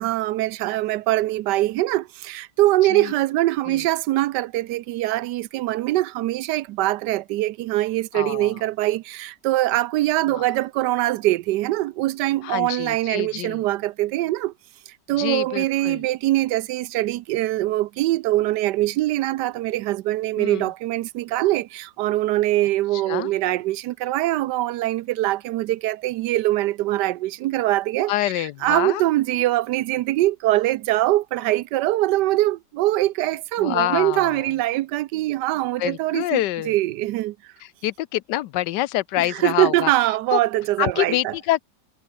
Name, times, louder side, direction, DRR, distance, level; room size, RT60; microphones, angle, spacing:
voice 1, 0.0-14.5 15.1-28.1 28.4-37.3 39.3-41.3, right 16 dB, 80° right, 1.2 m, -23 dB
voice 2, 8.1-8.6 10.2-10.4 12.4-13.6 15.1-16.0 20.4-20.7 22.9-23.3 28.1-29.0 33.6-34.5 35.8-36.7 37.6-39.9 40.3-40.4 40.8-41.6, left 15 dB, 90° left, 1.3 m, -26 dB
omnidirectional pair, 1.8 m